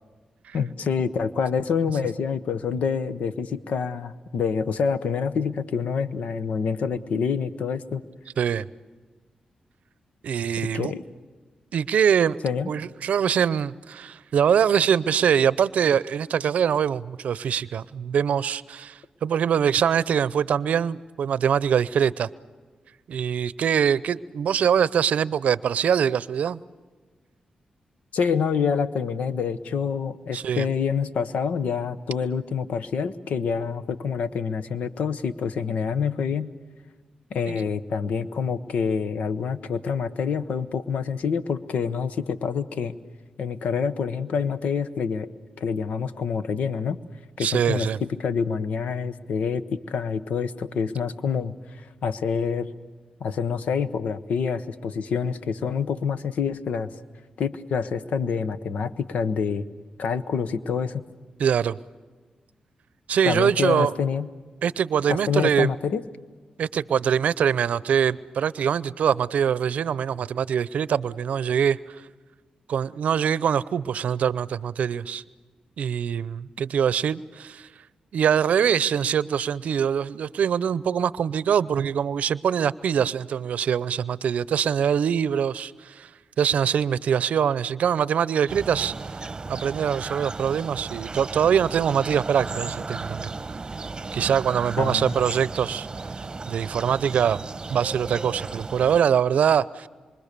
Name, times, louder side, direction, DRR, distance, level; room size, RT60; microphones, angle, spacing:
voice 1, 0.5-8.0 10.6-11.0 12.4-12.7 28.1-36.5 37.3-42.9 43.4-45.3 45.6-47.0 47.4-51.6 52.0-52.7 53.2-56.9 57.4-59.7 60.0-61.0 63.2-64.3 65.1-66.0 94.8-95.3, left 6 dB, 80° left, 1.1 m, -27 dB
voice 2, 8.4-8.7 10.2-10.9 11.7-12.4 12.7-22.3 23.1-26.6 30.3-30.7 37.5-37.6 47.4-48.0 61.4-61.8 63.1-63.9 64.6-65.7 66.6-72.0 72.7-75.2 75.8-77.7 78.1-86.1 86.4-88.9 89.5-93.3 94.1-95.9 96.5-99.9, right 8 dB, 75° right, 0.6 m, -23 dB
sound 1, 88.5-99.0, right 3 dB, 35° right, 1.0 m, -35 dB
26.5 x 24.0 x 6.8 m
cardioid pair, 55°, 2 cm